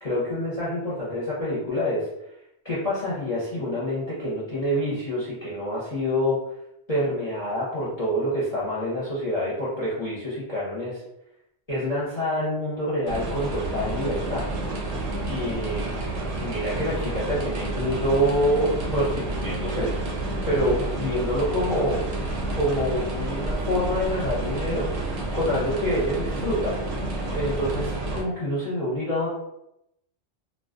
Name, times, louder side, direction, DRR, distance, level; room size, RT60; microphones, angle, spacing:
voice 1, 0.0-2.1 2.6-6.4 6.9-11.0 11.7-14.5 15.3-16.0 16.4-19.9 20.4-22.1 22.6-24.9 25.3-26.9 27.3-29.3, equal, 40° left, -8 dB, 0.7 m, -27 dB
sound 1, 13.1-28.2, right 2 dB, 85° right, 0.9 m, -29 dB
2.3 x 2.2 x 2.4 m, 0.82 s
omnidirectional pair, 1.1 m